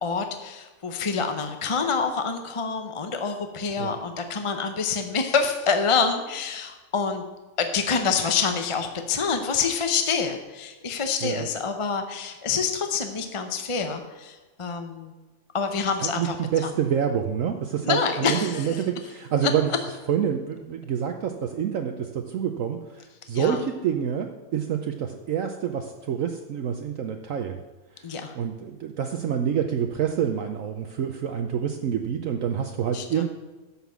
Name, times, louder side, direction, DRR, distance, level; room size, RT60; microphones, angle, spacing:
voice 1, 0.0-7.2 7.6-15.1 15.5-16.4 16.6-16.7 17.8-18.8 23.3-23.6 28.0-28.3 32.9-33.2, left 5 dB, 30° left, 6 dB, 0.6 m, -27 dB
voice 2, 16.0-19.7 20.1-27.6 28.0-28.1 28.3-33.3, right 8 dB, 65° right, 5 dB, 1.1 m, -27 dB
11.5 x 5.7 x 7.3 m, 1.2 s
omnidirectional pair, 1.6 m